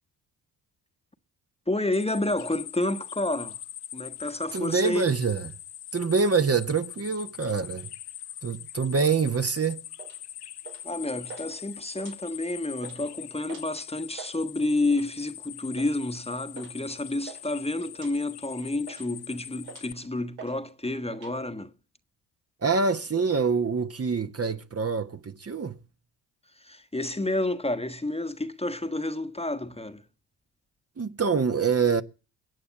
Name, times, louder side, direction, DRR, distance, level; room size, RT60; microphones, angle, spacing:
voice 1, 1.7-3.6 3.9-5.1 10.8-21.7 26.5-30.1, left 2 dB, 15° left, 1.4 m, -30 dB
sound 1, 1.9-19.9, left 11 dB, 60° left, 1.1 m, -42 dB
voice 2, 4.5-5.5 5.9-7.9 8.4-9.8 22.6-25.8 31.0-32.0, right 5 dB, 30° right, 1.3 m, -25 dB
sound 2, 10.0-10.2 10.6-10.9 11.3-11.5 11.9-12.5 12.8-13.0 13.5-13.7 14.0-14.4 14.9-15.2 15.8-16.0 16.6-16.7 17.0-17.4 17.9-18.1 18.6-19.2 19.6-20.0 20.4-20.6 20.8-21.3, right 6 dB, 85° right, 5.2 m, -45 dB
21.5 x 8.6 x 7.2 m
hypercardioid pair, 50°, 45 cm